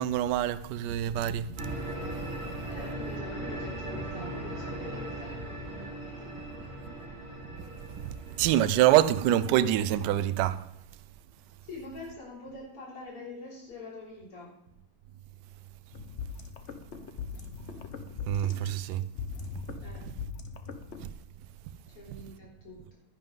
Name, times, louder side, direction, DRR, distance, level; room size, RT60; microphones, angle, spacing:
voice 1, 0.0-1.7 7.9-10.6 18.3-19.0 21.0-21.1, right 12 dB, 85° right, 0.9 m, -26 dB
sound 1, 1.6-10.4, right 1 dB, 15° right, 1.8 m, -39 dB
voice 2, 2.7-7.1 11.6-14.6 19.8-20.0 21.9-23.0, left 2 dB, 85° left, 4.4 m, -45 dB
sound 2, 15.9-21.0, left 5 dB, 70° left, 0.6 m, -40 dB
10.5 x 10.5 x 3.7 m
omnidirectional pair, 2.4 m